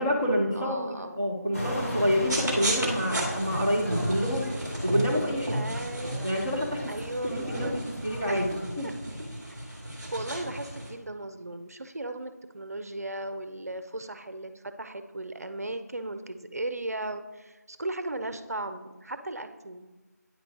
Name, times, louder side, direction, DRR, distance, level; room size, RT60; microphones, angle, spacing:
voice 1, 0.0-4.5 4.8-5.6 6.2-8.9 9.2-9.3, equal, 15° left, -4 dB, 0.7 m, -28 dB
voice 2, 0.6-1.2 5.5-6.3 6.9-7.7 8.3-8.4 8.8-8.9 9.5-9.6 10.1-19.9, right 2 dB, 60° right, 9 dB, 0.5 m, -36 dB
sound 1, 1.5-8.6, equal, 50° left, 2.4 m, -39 dB
sound 2, 2.3-10.9, right 1 dB, 5° right, 1.3 m, -34 dB
9.2 x 3.1 x 5.2 m, 1.2 s
figure-of-eight pair, 175°, 9 cm